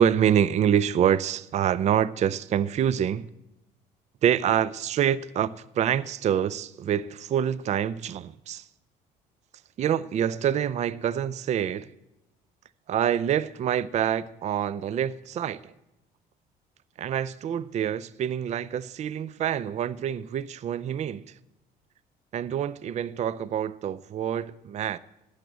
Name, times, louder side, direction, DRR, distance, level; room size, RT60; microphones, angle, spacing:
voice 1, 0.0-3.3 4.2-8.7 9.8-11.9 12.9-15.7 17.0-21.3 22.3-25.0, right 9 dB, 40° right, 0.4 m, -26 dB
12.0 x 7.2 x 8.0 m
cardioid pair, 110°, 17 cm